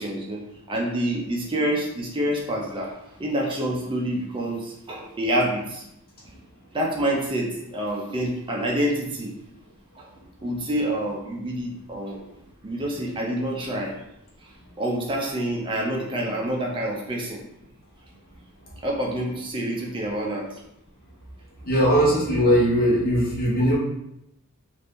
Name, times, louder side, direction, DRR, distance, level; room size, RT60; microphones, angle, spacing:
voice 1, 0.0-5.8 6.7-9.3 10.0-10.1 10.4-12.2 12.6-13.9 14.8-17.4 18.8-20.5, right 1 dB, 20° right, -2 dB, 0.5 m, -27 dB
voice 2, 21.6-23.8, equal, 45° left, -5 dB, 1.0 m, -20 dB
2.7 x 2.5 x 3.4 m, 0.82 s
head